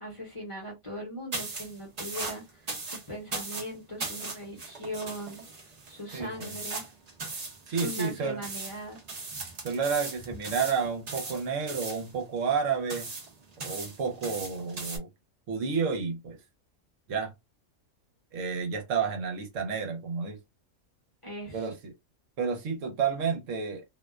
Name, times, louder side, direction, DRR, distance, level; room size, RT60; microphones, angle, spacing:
voice 1, 0.0-5.4 5.9-6.8 7.7-9.0 21.2-21.7, equal, 30° left, 0.7 m, -40 dB
sound 1, 1.3-15.0, right 3 dB, 40° right, 0.6 m, -39 dB
voice 2, 6.1-6.5 7.7-8.4 9.6-13.1 13.6-15.1 15.5-16.4 17.1-17.3 18.3-20.4 21.5-21.7 22.4-23.8, right 5 dB, 70° right, 1.1 m, -30 dB
2.6 x 2.1 x 2.3 m
omnidirectional pair, 1.4 m